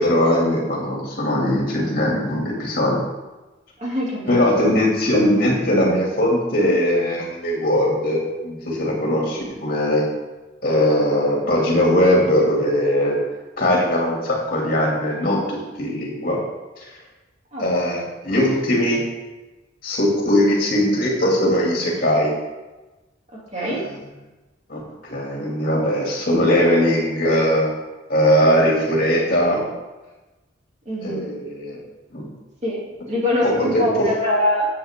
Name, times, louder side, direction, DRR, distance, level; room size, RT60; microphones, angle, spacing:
voice 1, 0.0-3.0 4.3-10.0 10.6-13.2 13.6-16.4 16.8-16.9 17.6-19.0 19.8-22.3 23.6-23.9 24.7-27.7 28.1-29.6 31.0-31.8 32.1-32.3 33.4-34.0, left 1 dB, 50° left, -2 dB, 2.6 m, -20 dB
voice 2, 3.8-4.7 17.5-17.7 23.5-23.8 30.9-31.3 32.6-32.8 33.1-34.7, left 1 dB, 35° right, -5 dB, 2.9 m, -23 dB
10.5 x 7.8 x 3.7 m, 1.1 s
head